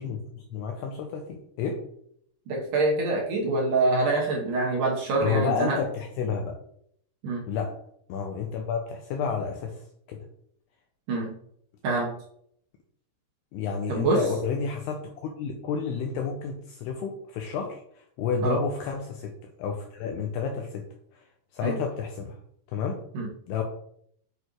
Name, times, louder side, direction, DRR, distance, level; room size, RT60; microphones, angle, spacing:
voice 1, 0.0-1.8 5.2-6.5 7.5-7.7 8.1-9.8 10.1-10.3 13.5-20.9 21.1-21.2 21.5-22.4 22.7-23.0 23.5-23.6, left 5 dB, 90° left, 3 dB, 2.3 m, -30 dB
voice 2, 2.5-5.8 7.2-7.4 11.1-11.3 11.8-12.1 13.9-14.2 18.4-18.6 21.6-21.8 23.1-23.3, right 3 dB, 70° right, -2 dB, 2.0 m, -25 dB
8.1 x 6.8 x 3.2 m, 0.69 s
omnidirectional pair, 5.5 m